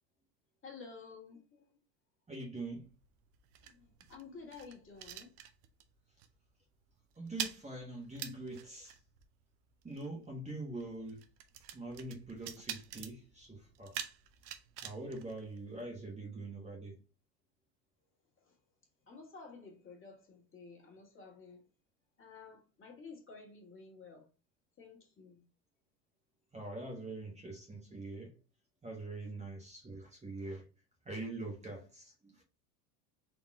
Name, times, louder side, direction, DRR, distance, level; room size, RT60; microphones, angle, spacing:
voice 1, 0.6-1.7 3.6-5.3 18.4-18.6 19.1-21.7 22.2-24.3 24.8-25.4, left 4 dB, 25° left, 2.0 m, -52 dB
voice 2, 2.3-2.8 7.2-9.0 9.8-11.2 11.7-14.0 14.8-17.0 26.5-28.3 28.8-30.6 31.0-32.4, right 2 dB, 15° right, 1.3 m, -44 dB
sound 1, 2.6-5.9 6.2-6.5 6.7-16.1, right 10 dB, 65° right, 0.9 m, -47 dB
4.3 x 2.9 x 4.2 m
hypercardioid pair, 105°, 48 cm